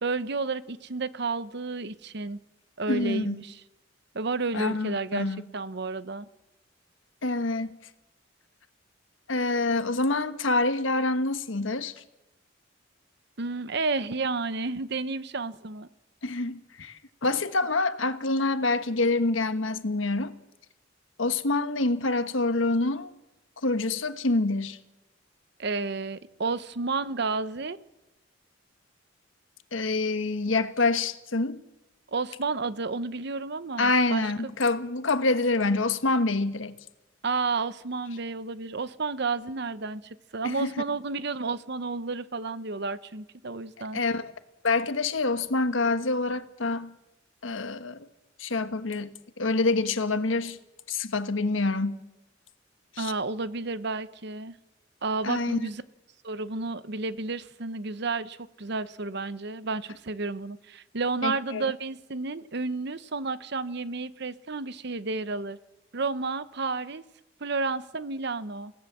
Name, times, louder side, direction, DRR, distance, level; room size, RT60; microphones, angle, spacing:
voice 1, 0.0-2.4 2.8-3.6 4.1-6.3 13.4-15.9 25.6-27.8 32.1-34.5 37.2-44.0 53.0-54.5 55.0-55.8 56.2-65.6 65.9-67.0 67.4-68.7, right 3 dB, 60° right, 0.9 m, -31 dB
voice 2, 2.9-3.4 4.5-5.5 7.2-7.8 9.3-12.0 16.2-20.3 21.2-23.1 23.6-24.8 29.7-31.6 33.8-36.8 40.4-40.7 43.9-44.3 44.6-46.9 47.4-48.1 48.4-50.6 50.9-52.0 52.9-53.1 55.2-55.7 61.2-61.7, left 3 dB, 90° left, 1.3 m, -26 dB
28.5 x 17.0 x 7.4 m
head